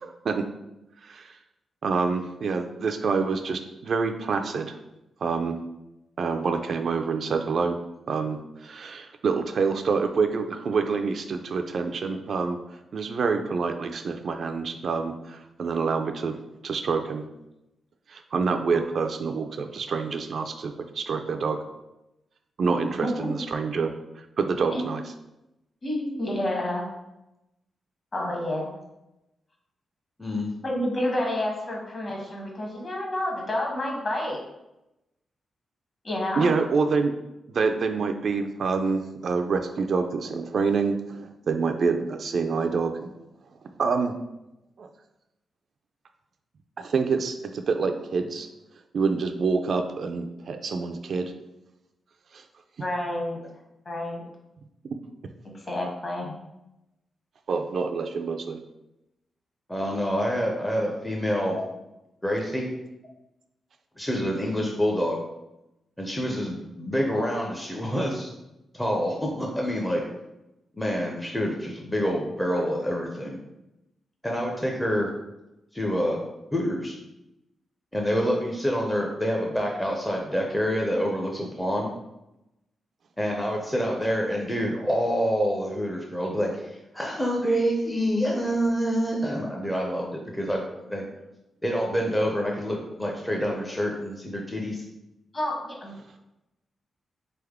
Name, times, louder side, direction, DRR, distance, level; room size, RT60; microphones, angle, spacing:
voice 1, 0.0-0.5 1.0-1.3 1.8-4.8 5.2-5.6 6.2-7.8 8.1-12.6 12.9-16.4 16.6-17.2 18.1-21.6 22.6-25.0 36.4-37.1 37.5-43.1 43.8-44.1 44.8-44.9 46.8-48.5 48.9-51.3 52.3-52.4 57.5-58.6, right 4 dB, 55° right, 6 dB, 0.3 m, -27 dB
voice 2, 25.8-26.9 28.1-28.8 30.6-34.4 36.0-36.5 52.8-53.4 53.8-54.2 55.7-56.3 61.5-61.6 95.3-95.9, left 1 dB, 35° left, -1 dB, 1.0 m, -29 dB
voice 3, 30.2-30.5 59.7-61.6 62.2-62.7 64.0-65.2 66.0-68.3 68.7-70.0 70.8-73.4 74.2-75.1 75.7-76.2 76.5-76.9 77.9-81.9 83.2-90.6 90.9-91.0 91.6-94.8, equal, 5° left, -1 dB, 0.5 m, -27 dB
3.8 x 3.4 x 3.5 m, 0.92 s
wide cardioid pair, 140°, 0 cm